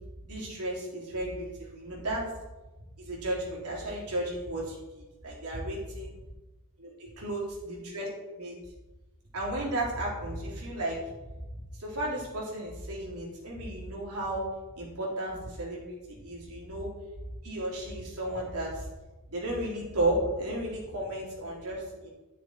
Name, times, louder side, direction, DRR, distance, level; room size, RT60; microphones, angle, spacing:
voice 1, 0.2-2.2 3.0-6.1 6.8-8.1 8.4-8.6 9.3-11.0 11.7-14.4 14.8-16.9 17.4-18.9 19.3-22.1, right 1 dB, 80° right, -4 dB, 3.5 m, -34 dB
11.0 x 6.5 x 4.6 m, 1.1 s
head